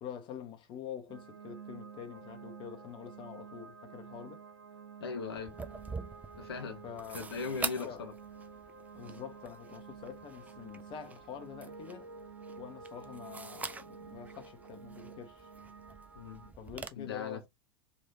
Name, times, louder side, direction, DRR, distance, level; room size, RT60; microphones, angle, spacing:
voice 1, 0.0-4.4 6.8-7.4 7.8-8.0 8.9-12.1 12.5-15.5 16.6-17.5, left 8 dB, 40° left, 0.9 m, -46 dB
sound 1, 1.1-16.5, right 5 dB, 75° right, 1.3 m, -50 dB
voice 2, 5.0-5.5 6.3-6.8 7.1-8.1 16.2-16.5 17.0-17.4, left 5 dB, 70° left, 0.8 m, -39 dB
sound 2, 5.4-16.9, right 4 dB, 10° right, 0.4 m, -45 dB
3.2 x 2.7 x 2.7 m
figure-of-eight pair, 85°, 13 cm